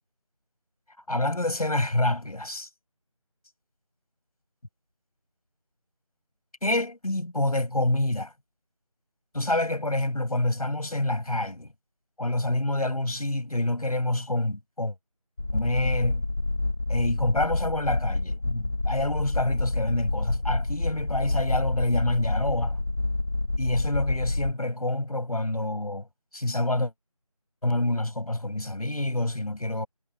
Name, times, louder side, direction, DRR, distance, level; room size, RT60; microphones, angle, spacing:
voice 1, 1.1-2.7 6.6-8.3 9.3-11.7 12.2-14.9 15.5-16.3 16.9-22.8 23.6-26.1 26.3-26.9 27.6-29.9, left 1 dB, 75° left, 6.4 m, -27 dB
sound 1, 15.4-24.5, left 2 dB, 40° left, 0.9 m, -28 dB
figure-of-eight pair, 175°, 19 cm